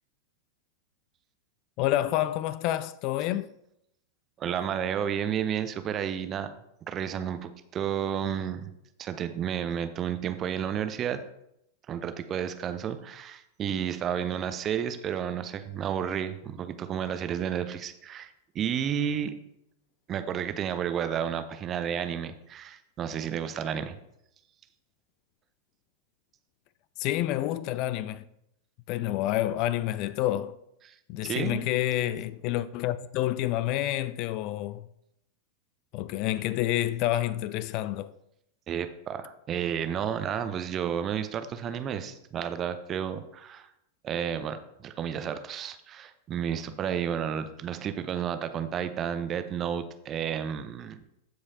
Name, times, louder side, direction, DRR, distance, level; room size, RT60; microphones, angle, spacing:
voice 1, 1.8-3.5 27.0-28.3 28.9-30.6 31.1-34.9 35.9-38.1, left 14 dB, 40° left, 0.3 m, -28 dB
voice 2, 4.4-6.5 6.9-8.7 9.0-11.2 11.9-19.4 20.1-24.0 30.8-31.0 31.2-31.6 38.7-43.7 44.0-51.1, right 8 dB, 30° right, 0.7 m, -31 dB
14.0 x 4.9 x 2.8 m
figure-of-eight pair, 90°, 0 cm